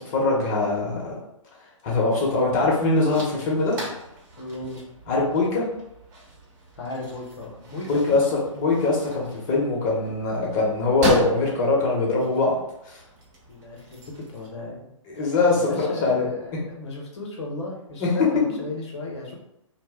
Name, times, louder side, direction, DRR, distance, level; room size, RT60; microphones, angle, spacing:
voice 1, 0.1-1.1 1.8-3.7 5.1-5.6 7.9-12.5 12.9-13.0 15.1-16.3 18.0-18.1, left 3 dB, 30° left, -3 dB, 0.9 m, -22 dB
sound 1, 2.2-14.5, equal, 35° right, 0.9 m, -37 dB
voice 2, 4.4-4.9 6.8-8.4 13.5-14.9 15.5-19.3, left 2 dB, 55° left, -1 dB, 0.9 m, -35 dB
2.6 x 2.1 x 3.5 m, 0.81 s
figure-of-eight pair, 130°, 17 cm